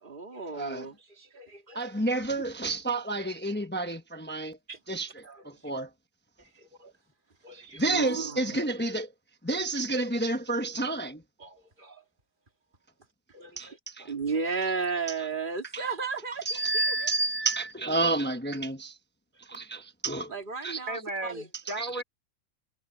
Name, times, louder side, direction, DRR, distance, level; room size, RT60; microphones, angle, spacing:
voice 1, 0.0-1.9 4.7-4.8 5.2-5.4 6.4-6.9 7.4-8.6 11.4-12.0 13.3-17.1 20.3-21.5, right 4 dB, 40° right, 2.7 m, -35 dB
voice 2, 0.5-0.9 1.7-4.6 4.9-5.9 7.7-9.1 9.4-11.2 13.6-14.1 15.7-15.8 16.4-19.0 19.4-20.3 20.6-20.8 21.8-22.0, right 2 dB, 10° left, 1.0 m, -30 dB
voice 3, 20.9-22.0, right 1 dB, 85° right, 4.9 m, -35 dB
omnidirectional pair, 1.4 m